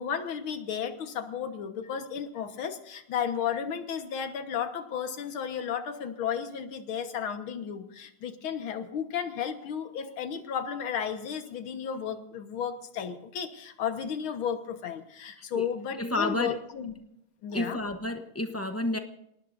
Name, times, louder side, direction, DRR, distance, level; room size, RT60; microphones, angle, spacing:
voice 1, 0.0-16.9 17.4-17.8, left 8 dB, 75° left, 7 dB, 2.2 m, -33 dB
voice 2, 16.0-16.5 17.5-19.0, left 2 dB, 20° left, 6 dB, 0.4 m, -30 dB
29.0 x 18.5 x 2.6 m, 0.81 s
omnidirectional pair, 2.3 m